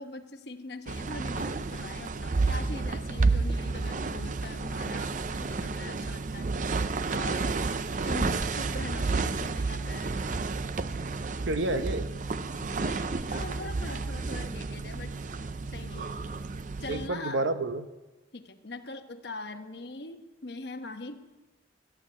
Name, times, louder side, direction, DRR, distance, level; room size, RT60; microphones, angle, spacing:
voice 1, 0.0-6.5 7.1-7.7 8.0-10.2 12.6-15.1 15.7-16.1 16.8-17.5 18.3-21.2, left 2 dB, 60° left, 6 dB, 1.1 m, -42 dB
sound 1, 0.9-17.1, right 3 dB, 45° right, 0.5 m, -31 dB
voice 2, 11.5-12.1 16.9-17.9, right 2 dB, 85° right, 10 dB, 0.9 m, -29 dB
14.5 x 9.3 x 8.4 m, 1.2 s
head